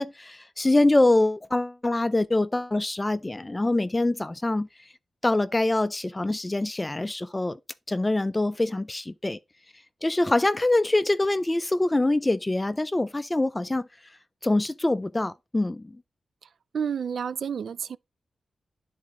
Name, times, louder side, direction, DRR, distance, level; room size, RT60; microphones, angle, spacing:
voice 1, 0.0-4.7 5.2-7.6 7.9-9.4 10.0-13.9 14.4-15.8, left 2 dB, 15° left, 0.4 m, -24 dB
voice 2, 16.7-18.0, right 7 dB, 75° right, 0.3 m, -30 dB
10.5 x 4.1 x 3.7 m
wide cardioid pair, 105°, 0 cm